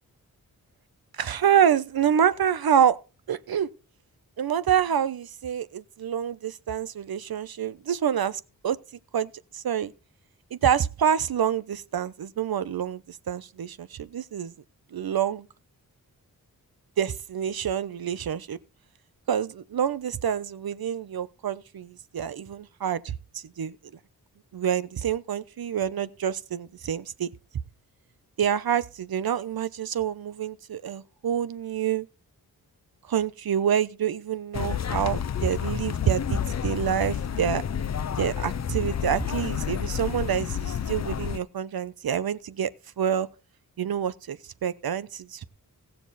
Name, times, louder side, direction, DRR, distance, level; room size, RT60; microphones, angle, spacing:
voice 1, 1.2-3.0 3.3-3.7 4.4-8.8 9.1-9.9 10.5-14.5 14.9-15.5 17.0-18.6 19.3-23.8 24.5-27.3 28.4-32.1 33.1-37.6 38.2-42.7 43.0-43.3 43.8-45.5, right 9 dB, 80° right, 1.0 m, -27 dB
sound 1, 34.5-41.4, left 8 dB, 50° left, 0.6 m, -30 dB
17.5 x 7.1 x 4.2 m
wide cardioid pair, 85°, 36 cm